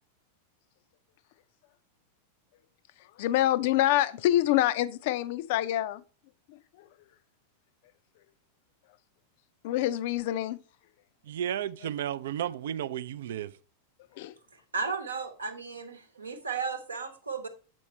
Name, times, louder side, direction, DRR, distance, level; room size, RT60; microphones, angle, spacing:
voice 1, 3.2-6.0 6.5-6.9 9.6-10.6 14.2-14.3, left 14 dB, 50° left, 0.4 m, -26 dB
voice 2, 11.3-13.5, right 10 dB, 60° right, 0.4 m, -33 dB
voice 3, 14.7-17.5, right 5 dB, 75° right, 0.9 m, -34 dB
7.5 x 5.3 x 4.3 m
figure-of-eight pair, 90°, 0 cm